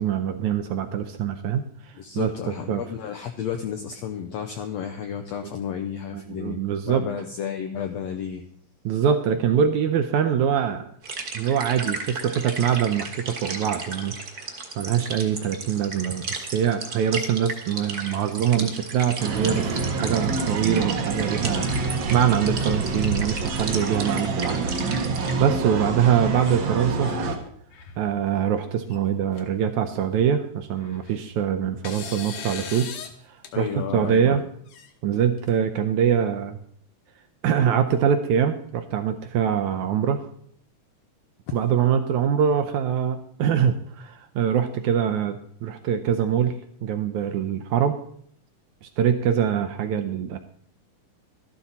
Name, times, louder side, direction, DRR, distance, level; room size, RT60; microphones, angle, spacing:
voice 1, 0.0-2.3 2.7-2.8 5.4-5.5 6.1-7.1 8.9-10.8 11.3-14.5 14.8-21.7 22.1-24.6 25.4-27.1 28.0-32.9 33.6-34.4 35.0-36.6 37.4-40.3 41.5-48.0 48.8-50.4, right 8 dB, 80° right, 8 dB, 1.8 m, -24 dB
voice 2, 2.0-6.6 6.9-8.4 33.5-34.4, left 8 dB, 85° left, 6 dB, 1.5 m, -32 dB
sound 1, 11.0-25.3, right 4 dB, 45° right, 1.3 m, -35 dB
sound 2, 19.2-27.4, right 3 dB, 65° right, 1.2 m, -27 dB
sound 3, 26.5-27.2 27.6-28.1 28.9-29.0 29.3-29.4 30.8-31.3 31.8-33.1 33.4-33.5 34.7-35.5, left 7 dB, 65° left, 2.3 m, -39 dB
12.5 x 12.0 x 4.1 m, 0.64 s
omnidirectional pair, 4.0 m